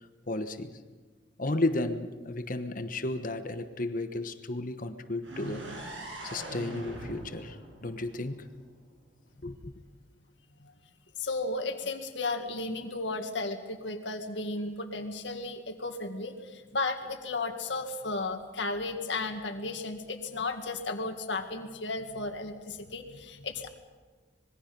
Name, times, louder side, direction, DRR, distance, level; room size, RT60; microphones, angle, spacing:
voice 1, 0.3-0.8 1.4-5.7 6.2-8.5 9.4-9.7, left 2 dB, 45° left, 9 dB, 1.2 m, -33 dB
sound 1, 5.2-9.1, right 1 dB, 90° right, 6.3 m, -42 dB
voice 2, 11.2-23.7, left 3 dB, 70° left, 6 dB, 2.0 m, -34 dB
26.0 x 21.0 x 5.4 m, 1.4 s
head